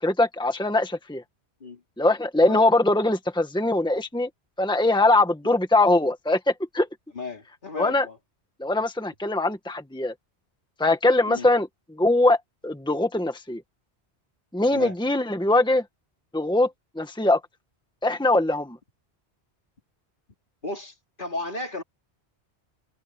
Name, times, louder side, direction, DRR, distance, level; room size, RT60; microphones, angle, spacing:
voice 1, 0.0-1.2 2.0-4.3 4.6-6.9 7.8-8.0 8.6-10.1 10.8-11.7 11.9-12.4 12.6-13.6 14.5-15.8 16.3-16.7 16.9-17.4 18.0-18.8, left 2 dB, 5° left, 1.6 m, -22 dB
voice 2, 7.1-8.2 11.3-11.5 14.7-14.9 20.6-21.8, left 3 dB, 50° left, 3.0 m, -34 dB
omnidirectional pair, 1.1 m